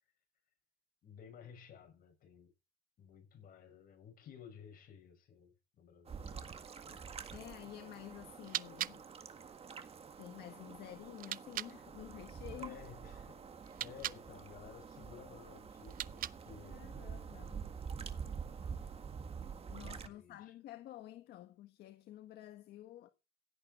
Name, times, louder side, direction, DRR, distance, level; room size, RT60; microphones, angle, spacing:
voice 1, 1.0-2.5 3.0-7.1 12.5-13.5 13.8-16.8 18.4-18.9 19.8-20.5, left 7 dB, 60° left, 6.6 m, -55 dB
sound 1, 6.1-20.1, right 6 dB, 35° right, 1.8 m, -47 dB
voice 2, 7.3-9.0 10.2-12.8 16.7-17.7 19.7-23.1, left 13 dB, 75° left, 1.5 m, -51 dB
sound 2, 8.4-11.8 13.6-14.3 15.8-16.6, right 12 dB, 55° right, 0.6 m, -43 dB
16.5 x 8.8 x 4.4 m
cardioid pair, 110°, 17 cm